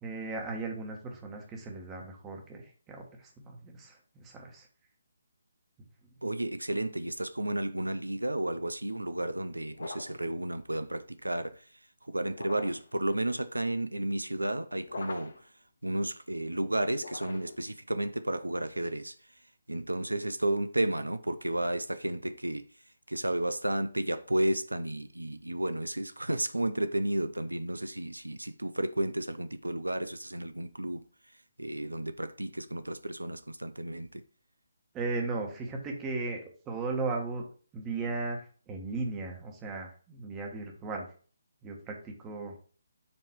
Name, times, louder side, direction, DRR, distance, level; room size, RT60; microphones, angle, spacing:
voice 1, 0.0-4.7 34.9-37.4 37.7-41.1 41.6-42.5, right 3 dB, 15° right, 1.2 m, -36 dB
voice 2, 6.2-15.5 15.8-19.4 19.7-22.6 23.1-31.0 31.6-34.2, right 1 dB, 80° right, 0.4 m, -32 dB
sound 1, 9.7-10.3 12.3-12.9 14.8-15.5 16.9-17.7, left 3 dB, 60° left, 0.7 m, -43 dB
7.1 x 3.0 x 4.6 m
figure-of-eight pair, 140°, 0 cm